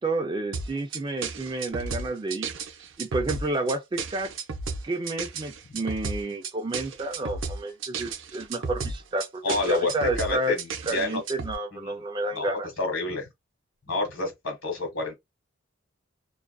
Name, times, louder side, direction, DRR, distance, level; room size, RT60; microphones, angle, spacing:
voice 1, 0.0-2.5 3.0-4.3 4.8-10.6 10.9-12.7, right 2 dB, 20° right, 0.3 m, -30 dB
sound 1, 0.5-11.5, right 4 dB, 70° right, 0.5 m, -33 dB
voice 2, 9.4-11.2 11.7-12.0 12.3-13.3 13.9-15.2, left 2 dB, 75° left, 1.3 m, -29 dB
2.4 x 2.4 x 2.2 m
head